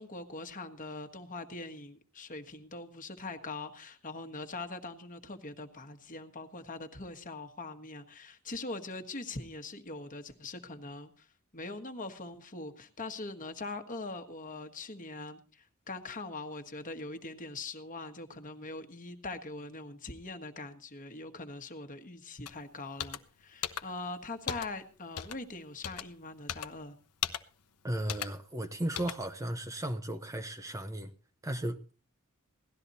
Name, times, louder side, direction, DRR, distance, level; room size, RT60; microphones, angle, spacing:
voice 1, 0.0-11.3 11.5-27.0, left 2 dB, 35° left, 1.5 m, -42 dB
sound 1, 22.5-22.6 23.0-23.2 23.6-23.8 24.5-24.7 25.2-25.4 25.8-26.0 26.5-26.7 27.2-27.4 28.1-28.3 29.0-29.2, left 9 dB, 85° left, 0.9 m, -36 dB
voice 2, 27.8-31.1 31.4-31.8, right 1 dB, 15° right, 0.8 m, -35 dB
17.5 x 12.5 x 4.1 m
head